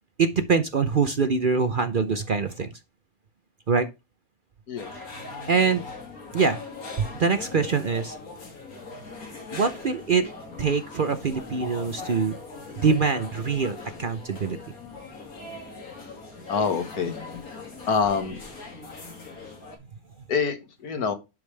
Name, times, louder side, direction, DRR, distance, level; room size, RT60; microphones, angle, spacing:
voice 1, 0.2-2.8 3.7-3.9 4.9-5.8 6.3-6.6 7.0-8.2 9.5-10.3 10.6-12.3 12.8-14.6, right 5 dB, 50° right, 0.6 m, -24 dB
sound 1, 4.8-19.8, left 3 dB, 70° left, 2.8 m, -40 dB
voice 2, 16.5-17.1 17.9-18.4 20.3-20.6 20.8-21.1, left 5 dB, 90° left, 1.9 m, -25 dB
10.5 x 5.2 x 3.3 m
omnidirectional pair, 1.6 m